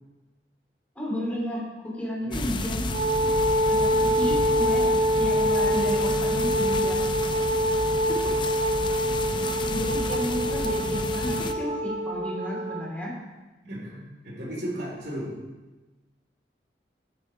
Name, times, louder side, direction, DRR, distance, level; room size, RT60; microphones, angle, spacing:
voice 1, 0.9-2.9 3.2-3.3 3.6-4.9 5.2-7.1 8.1-8.3 9.6-13.1, equal, 10° left, -5 dB, 3.4 m, -32 dB
sound 1, 2.3-11.5, left 2 dB, 25° left, 0.5 m, -32 dB
Wind instrument woodwind instrument, 2.9-12.9, equal, 45° right, 0.6 m, -25 dB
voice 2, 8.9-10.2 13.6-15.3, equal, 65° right, -5 dB, 4.0 m, -37 dB
9.9 x 8.7 x 4.7 m, 1.2 s
head